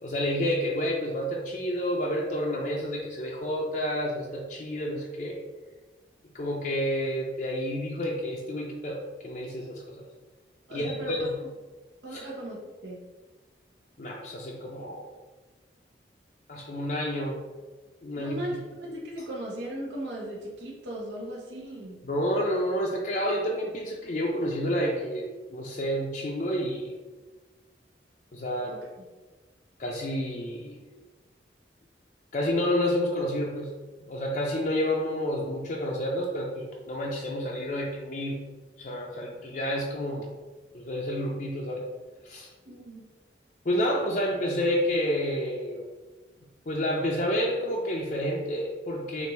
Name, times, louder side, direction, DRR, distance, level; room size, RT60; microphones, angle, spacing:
voice 1, 0.0-5.4 6.3-10.0 10.7-11.4 12.1-12.3 14.0-15.1 16.5-17.4 18.0-18.6 22.0-26.9 28.3-28.8 29.8-30.8 32.3-33.7 34.0-38.4 38.8-40.3 40.7-41.8 42.2-42.5 43.6-45.9 46.7-49.3, equal, 45° left, -2 dB, 0.5 m, -29 dB
voice 2, 10.7-11.2 12.0-13.0 18.2-22.0 28.7-28.8 42.7-43.0, right 1 dB, 85° right, -3 dB, 1.0 m, -37 dB
6.6 x 2.5 x 3.1 m, 1.3 s
head